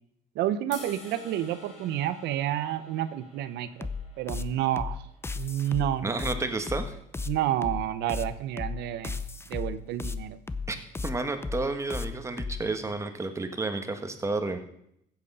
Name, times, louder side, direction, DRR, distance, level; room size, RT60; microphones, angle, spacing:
voice 1, 0.3-3.9 4.2-5.0 5.4-6.3 7.3-9.2 9.5-10.4, right 12 dB, 85° right, 13 dB, 0.8 m, -30 dB
sound 1, 0.7-6.9, left 3 dB, 45° left, 3.4 m, -51 dB
sound 2, 3.8-12.6, left 4 dB, 15° left, 0.6 m, -34 dB
voice 2, 6.0-7.0 10.7-10.8 11.0-14.6, right 3 dB, 15° right, 7 dB, 1.5 m, -31 dB
15.5 x 8.1 x 5.5 m, 0.75 s
cardioid pair, 110°, 17 cm